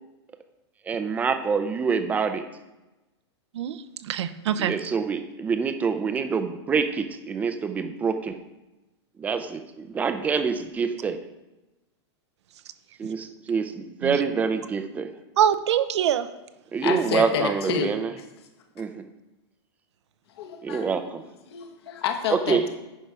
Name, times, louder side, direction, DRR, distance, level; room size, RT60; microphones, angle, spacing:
voice 1, 0.9-2.4 4.7-8.4 9.2-11.2 13.0-15.1 16.7-18.1 18.8-18.9 20.6-21.2 22.5-22.6, right 5 dB, 10° right, 9 dB, 0.4 m, -26 dB
voice 2, 3.5-4.7 14.0-14.2 15.4-16.3, right 9 dB, 75° right, 12 dB, 0.7 m, -24 dB
voice 3, 16.8-17.9 20.3-20.9 21.5-22.7, left 7 dB, 60° left, 6 dB, 1.2 m, -29 dB
9.9 x 5.3 x 4.7 m, 1.0 s
supercardioid pair, 160°, 15 cm